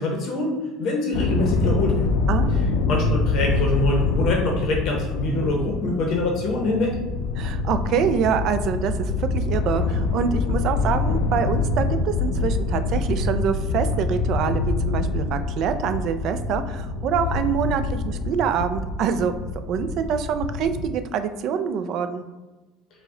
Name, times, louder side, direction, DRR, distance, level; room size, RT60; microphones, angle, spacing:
voice 1, 0.0-2.1 2.9-7.0, left 2 dB, 45° left, 0 dB, 0.7 m, -24 dB
sound 1, 1.1-20.9, left 3 dB, 90° left, 0.3 m, -25 dB
voice 2, 2.3-2.6 7.4-19.3 19.7-22.2, right 7 dB, 45° right, 9 dB, 0.3 m, -25 dB
4.7 x 2.1 x 3.7 m, 1.2 s
cardioid pair, 160°, 0 cm